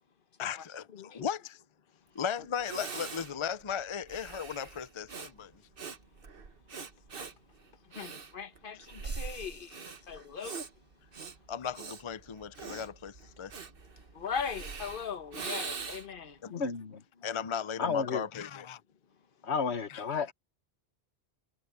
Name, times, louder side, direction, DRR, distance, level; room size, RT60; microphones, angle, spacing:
voice 1, 0.4-1.6 2.1-5.5 11.5-13.5 15.6-15.7 16.4-16.5 17.2-18.8 19.9-20.3, left 7 dB, 35° left, 0.5 m, -37 dB
voice 2, 0.9-1.3 8.0-10.6 14.1-16.4, left 6 dB, 55° left, 1.3 m, -39 dB
Breathing, 2.2-2.3 2.6-16.2, right 5 dB, 55° right, 1.4 m, -43 dB
sound 1, 9.0-10.7, equal, 10° right, 4.4 m, -53 dB
voice 3, 16.5-17.0 17.8-18.2 19.4-20.3, left 5 dB, 75° left, 1.6 m, -32 dB
omnidirectional pair, 1.1 m